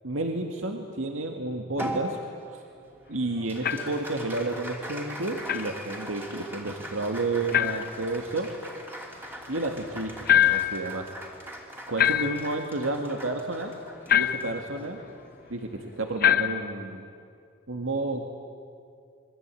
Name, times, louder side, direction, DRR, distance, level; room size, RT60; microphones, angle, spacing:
voice 1, 0.0-2.2 3.1-8.5 9.5-11.1 11.9-13.7 14.1-15.0 15.5-17.1 17.7-18.2, right 2 dB, 80° right, 3 dB, 2.0 m, -31 dB
Applause, 1.8-16.4, equal, 10° right, 2.9 m, -41 dB
sound 1, 3.6-4.0 5.5-5.7 7.5-7.9 10.3-10.8 12.0-12.6 14.1-14.6 16.2-16.7, left 10 dB, 45° left, 0.8 m, -23 dB
28.0 x 23.5 x 9.1 m, 2.3 s
head